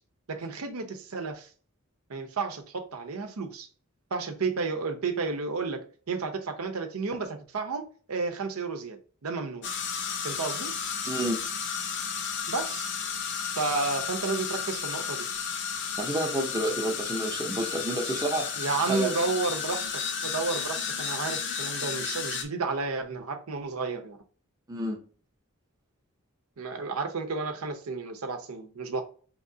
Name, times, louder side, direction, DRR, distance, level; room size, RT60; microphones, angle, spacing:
voice 1, 0.3-1.5 2.1-3.7 4.1-9.7 10.2-10.7 12.5-12.9 13.6-15.3 18.6-19.9 20.2-24.2 26.6-29.0, right 4 dB, 85° right, 0.7 m, -32 dB
sound 1, 9.6-22.4, left 6 dB, 55° left, 0.7 m, -33 dB
voice 2, 11.1-11.4 16.0-18.5 18.9-19.2 24.7-25.0, right 1 dB, 15° right, 0.6 m, -29 dB
4.9 x 3.0 x 2.7 m
head